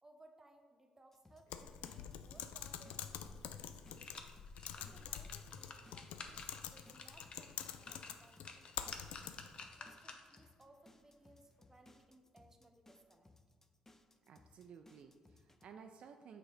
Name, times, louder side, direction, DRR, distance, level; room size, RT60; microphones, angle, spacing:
voice 1, 0.0-4.3 4.7-9.4 9.8-13.3, right 2 dB, 25° right, 4 dB, 0.9 m, -65 dB
sound 1, 1.1-15.7, left 2 dB, 20° left, 0.6 m, -65 dB
Typing, 1.5-9.6, left 9 dB, 80° left, 0.3 m, -47 dB
sound 2, 3.6-10.5 10.9-11.0, left 4 dB, 50° left, 0.7 m, -53 dB
voice 2, 14.3-16.4, right 6 dB, 60° right, 5 dB, 0.4 m, -56 dB
6.1 x 3.9 x 5.0 m, 1.5 s
supercardioid pair, 60°, 2 cm